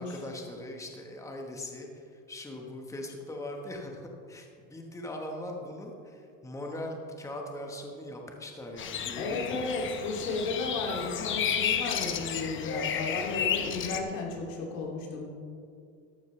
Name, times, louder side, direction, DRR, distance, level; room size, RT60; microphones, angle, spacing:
voice 1, 0.0-9.6, left 1 dB, 10° left, 1 dB, 1.3 m, -40 dB
sound 1, 8.8-14.0, left 8 dB, 35° left, 0.8 m, -32 dB
voice 2, 9.2-15.3, left 3 dB, 90° left, -1 dB, 2.7 m, -34 dB
14.0 x 11.5 x 3.3 m, 2.3 s
supercardioid pair, 130°, 37 cm